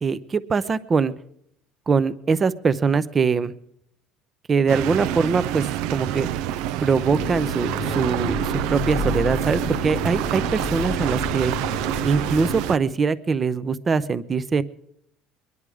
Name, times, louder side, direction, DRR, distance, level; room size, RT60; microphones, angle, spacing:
voice 1, 0.0-1.1 1.9-3.5 4.5-5.7 5.9-6.3 6.8-11.5 12.0-14.6, right 5 dB, 25° right, 15 dB, 0.7 m, -22 dB
sound 1, 4.7-12.8, right 12 dB, 75° right, 0.6 m, -27 dB
sound 2, 7.1-12.6, left 7 dB, 40° left, 0.8 m, -32 dB
23.0 x 11.0 x 4.9 m, 0.72 s
cardioid pair, 145°, 0 cm